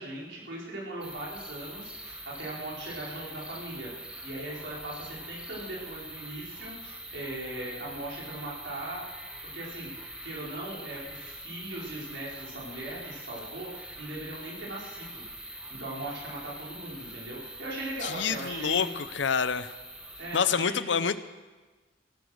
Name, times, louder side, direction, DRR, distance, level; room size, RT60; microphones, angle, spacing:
voice 1, 0.0-9.0 9.5-9.9 10.2-18.9 20.2-21.0, right 1 dB, 75° right, -5 dB, 4.7 m, -39 dB
sound 1, 1.0-20.4, right 1 dB, 5° right, 1.5 m, -44 dB
voice 2, 18.0-19.7 20.3-21.2, left 6 dB, 75° left, 14 dB, 0.7 m, -27 dB
16.5 x 12.0 x 6.4 m, 1.2 s
head